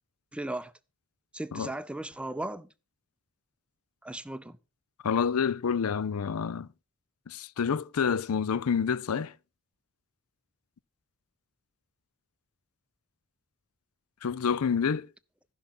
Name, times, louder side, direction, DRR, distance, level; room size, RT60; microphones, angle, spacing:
voice 1, 0.3-0.7 1.3-2.7 4.0-4.6, right 1 dB, 5° right, 0.5 m, -36 dB
voice 2, 5.0-6.7 7.3-9.3 14.2-15.1, left 6 dB, 90° left, 0.5 m, -28 dB
15.0 x 5.7 x 5.9 m
head